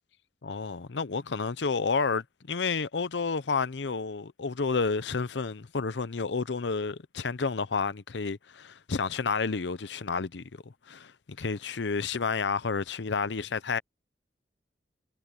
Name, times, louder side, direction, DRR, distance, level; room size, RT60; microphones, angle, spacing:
voice 1, 0.4-10.4 10.9-11.1 11.4-13.8, left 4 dB, 90° left, 0.7 m, -30 dB
head